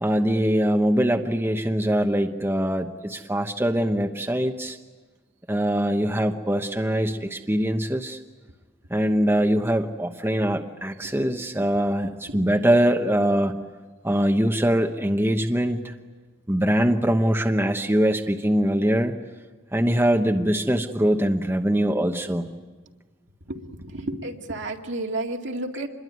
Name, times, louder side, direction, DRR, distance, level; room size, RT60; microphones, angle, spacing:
voice 1, 0.0-4.8 5.5-8.2 8.9-13.5 14.0-15.9 16.5-19.1 19.7-22.5, equal, 10° right, 4 dB, 1.0 m, -22 dB
voice 2, 23.5-25.9, right 2 dB, 65° right, 2 dB, 2.2 m, -31 dB
27.0 x 22.0 x 9.5 m, 1.3 s
head